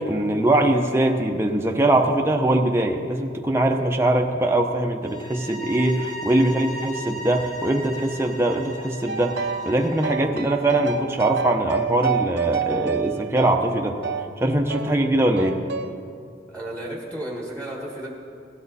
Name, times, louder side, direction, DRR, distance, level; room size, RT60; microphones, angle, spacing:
voice 1, 0.0-9.4 9.7-14.0 14.4-15.6, right 1 dB, 15° right, 2 dB, 0.7 m, -22 dB
sound 1, 5.0-10.2, equal, 35° left, 3.9 m, -37 dB
sound 2, 9.1-9.7 10.0-14.3 14.7-14.9 15.4-15.9, right 6 dB, 65° right, 0.6 m, -28 dB
voice 2, 16.5-18.1, right 1 dB, 5° left, -3 dB, 1.5 m, -33 dB
17.0 x 12.5 x 4.1 m, 2.4 s
head